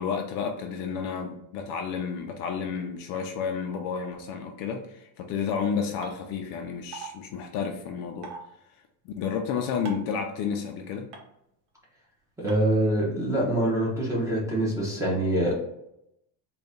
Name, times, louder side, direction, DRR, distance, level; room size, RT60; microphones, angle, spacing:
voice 1, 0.0-8.3 9.1-11.1, left 6 dB, 55° left, 4 dB, 0.5 m, -31 dB
sound 1, 6.0-6.1 6.9-7.1 8.2-8.4 9.9-10.1 11.1-11.2 12.5-12.6, right 6 dB, 75° right, 1.1 m, -38 dB
voice 2, 12.4-15.6, right 1 dB, 5° right, -5 dB, 0.7 m, -25 dB
3.9 x 2.3 x 3.5 m, 0.82 s
cardioid pair, 170°, 50 cm